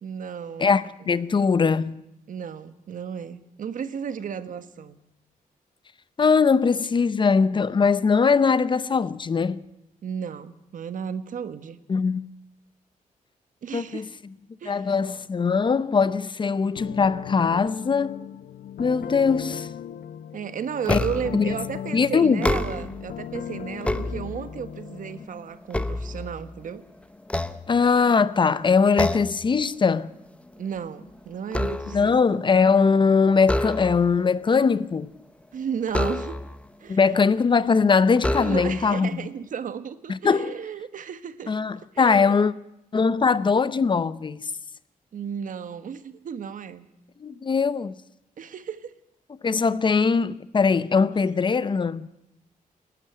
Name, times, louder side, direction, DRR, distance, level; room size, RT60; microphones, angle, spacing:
voice 1, 0.0-0.8 1.1-1.2 2.3-5.0 10.0-11.8 13.6-14.1 14.6-14.9 20.3-26.8 30.6-32.1 35.5-36.4 36.8-37.0 38.4-41.5 41.9-42.4 45.1-46.9 48.4-48.9 50.2-50.3 51.2-51.3, right 7 dB, 65° right, 1.4 m, -34 dB
voice 2, 0.6-2.0 6.2-9.6 11.9-12.3 13.7-14.0 14.7-18.3 18.8-19.7 20.9-21.0 21.3-21.5 21.9-22.5 27.7-30.1 31.9-35.1 36.9-39.3 40.1-40.6 41.5-42.5 42.9-44.5 47.2-47.9 49.4-52.1, left 5 dB, 35° left, 0.7 m, -21 dB
sound 1, 16.7-25.2, left 10 dB, 85° left, 0.7 m, -37 dB
sound 2, 20.9-21.4 22.3-23.1 23.6-24.7 25.2-26.7 27.2-28.2 29.0-29.5 29.8-30.1 30.5-32.2 33.4-34.2 35.9-36.7 37.4-37.5 38.2-38.9, left 1 dB, 10° left, 0.9 m, -28 dB
27.5 x 12.0 x 9.3 m
wide cardioid pair, 140°, 15 cm